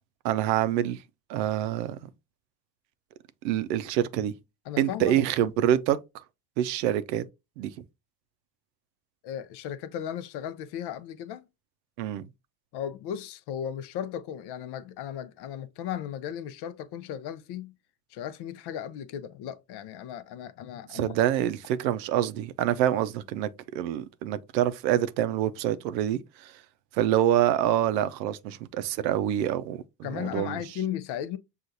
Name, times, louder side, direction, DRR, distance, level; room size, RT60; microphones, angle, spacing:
voice 1, 0.2-1.0 1.3-2.0 3.4-4.3 4.8-6.0 6.6-7.3 7.6-7.7 12.0-12.3 20.9-26.5 26.9-29.8 30.1-30.6, right 11 dB, 85° right, 0.6 m, -26 dB
voice 2, 4.7-5.2 9.2-11.5 12.7-17.8 18.1-21.2 30.0-31.4, left 10 dB, 55° left, 0.6 m, -36 dB
6.3 x 2.5 x 2.6 m
hypercardioid pair, 75°, 50 cm